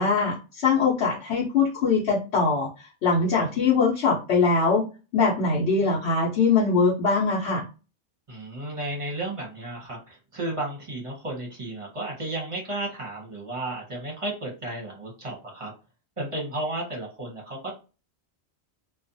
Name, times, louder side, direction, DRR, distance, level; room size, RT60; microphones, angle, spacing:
voice 1, 0.0-4.8 5.1-7.6, left 4 dB, 70° left, -5 dB, 1.0 m, -22 dB
voice 2, 8.3-15.7 16.2-17.7, right 1 dB, 30° right, -2 dB, 0.8 m, -33 dB
2.5 x 2.3 x 2.6 m, 0.31 s
omnidirectional pair, 1.2 m